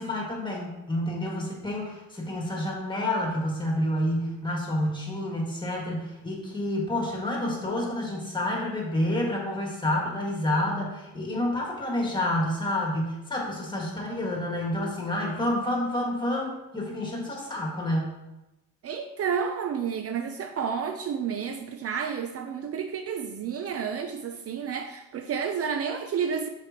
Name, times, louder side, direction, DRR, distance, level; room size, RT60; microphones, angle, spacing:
voice 1, 0.0-18.1, left 1 dB, 15° left, -2 dB, 1.9 m, -29 dB
voice 2, 18.8-26.5, right 7 dB, 50° right, 6 dB, 0.5 m, -30 dB
6.7 x 4.8 x 3.0 m, 0.96 s
cardioid pair, 90°, 30 cm